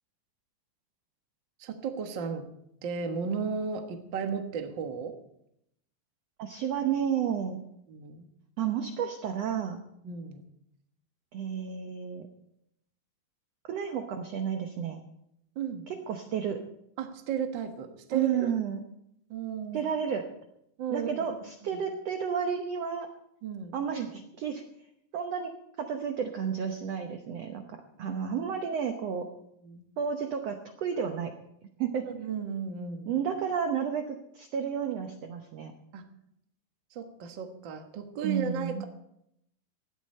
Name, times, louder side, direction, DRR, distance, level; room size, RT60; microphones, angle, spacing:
voice 1, 1.6-2.5 2.8-5.2 7.9-8.3 10.0-10.4 15.5-15.8 17.0-18.5 19.3-19.9 20.8-21.3 21.7-21.8 23.4-23.7 28.0-28.2 29.6-29.8 32.1-33.2 35.9-36.0 36.9-38.9, right 6 dB, 60° right, 5 dB, 1.2 m, -34 dB
voice 2, 6.4-7.6 8.6-9.8 11.3-12.3 13.6-15.0 15.9-16.6 18.1-18.8 19.7-20.2 20.9-23.1 23.7-24.6 25.1-25.5 25.8-29.3 30.0-31.3 31.8-32.0 33.1-35.7 38.2-38.8, right 7 dB, 75° right, 5 dB, 1.5 m, -31 dB
18.0 x 12.0 x 4.4 m, 0.76 s
omnidirectional pair, 4.3 m